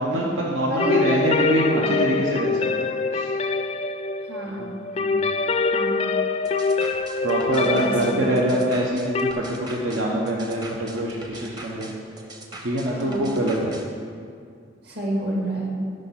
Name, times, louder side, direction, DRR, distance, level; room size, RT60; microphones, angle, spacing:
voice 1, 0.0-3.3 4.6-4.7 5.0-5.3 7.2-11.9 12.6-13.8, right 1 dB, 85° right, -3 dB, 0.9 m, -24 dB
voice 2, 0.7-1.1 1.8-2.2 4.2-4.8 5.7-6.1 7.5-8.4 12.9-13.3 14.8-15.8, right 1 dB, 55° right, -3 dB, 2.0 m, -30 dB
sound 1, 0.8-9.3, left 4 dB, 30° left, 0.3 m, -25 dB
sound 2, 6.5-13.9, right 2 dB, 20° right, 0.8 m, -41 dB
9.7 x 5.3 x 5.8 m, 2.3 s
head